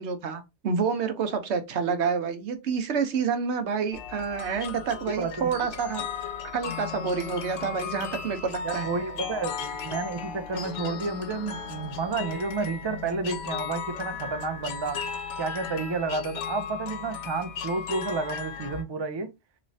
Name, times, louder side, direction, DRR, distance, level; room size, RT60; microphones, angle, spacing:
voice 1, 0.0-6.0 6.5-8.9, right 6 dB, 70° right, 1.0 m, -28 dB
sound 1, 3.9-18.8, left 6 dB, 80° left, 1.0 m, -36 dB
voice 2, 5.2-5.5 8.6-15.0 15.4-19.3, right 4 dB, 45° right, 0.3 m, -31 dB
3.1 x 3.1 x 2.6 m
omnidirectional pair, 1.2 m